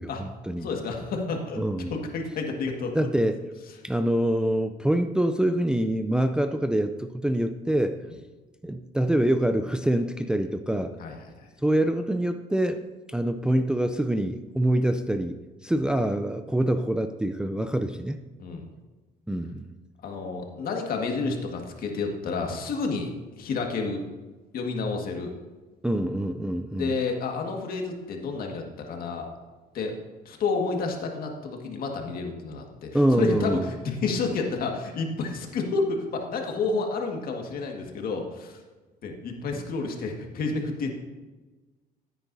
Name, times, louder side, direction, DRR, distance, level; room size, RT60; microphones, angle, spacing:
voice 1, 0.0-0.7 1.6-1.9 2.9-3.4 3.8-8.0 8.6-10.9 11.6-12.8 13.1-15.4 15.6-18.2 19.3-19.7 25.8-26.9 32.9-33.7, right 1 dB, 5° right, 7 dB, 0.4 m, -25 dB
voice 2, 0.6-3.3 11.0-11.5 15.7-15.8 18.4-18.7 20.0-23.1 23.4-24.1 24.5-25.3 26.7-29.3 29.7-30.0 30.3-38.6 39.0-40.9, left 4 dB, 60° left, 2 dB, 1.8 m, -30 dB
14.5 x 9.1 x 2.7 m, 1.2 s
cardioid pair, 110°, 17 cm